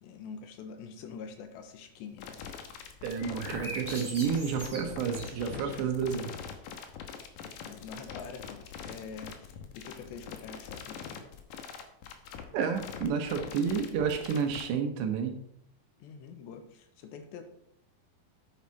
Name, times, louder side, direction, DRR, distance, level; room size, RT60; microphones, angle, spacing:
voice 1, 0.0-2.4 4.6-4.9 5.5-5.9 7.6-11.3 16.0-17.4, left 6 dB, 90° left, 7 dB, 3.4 m, -45 dB
sound 1, 2.2-14.6, left 7 dB, 70° left, 2.1 m, -43 dB
voice 2, 3.0-6.3 12.5-15.4, right 6 dB, 80° right, 5 dB, 3.5 m, -30 dB
sound 2, 3.2-5.9, equal, 5° right, 2.2 m, -42 dB
9.8 x 9.2 x 4.7 m, 0.72 s
omnidirectional pair, 5.0 m